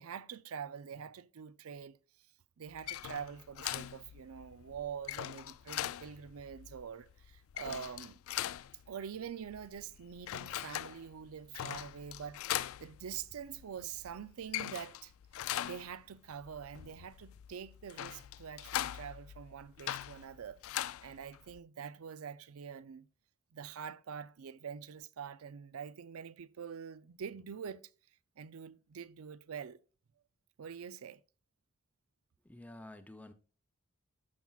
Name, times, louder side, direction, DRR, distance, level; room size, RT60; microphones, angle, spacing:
voice 1, 0.0-2.0 2.6-8.2 8.9-15.1 15.6-20.6 21.0-23.1 23.5-27.9 28.4-29.8 30.6-31.2, right 7 dB, 75° right, 0.4 m, -45 dB
sound 1, 2.7-21.6, left 12 dB, 70° left, 0.3 m, -42 dB
voice 2, 32.4-33.3, left 1 dB, 5° left, 0.5 m, -50 dB
12.5 x 6.0 x 2.3 m
head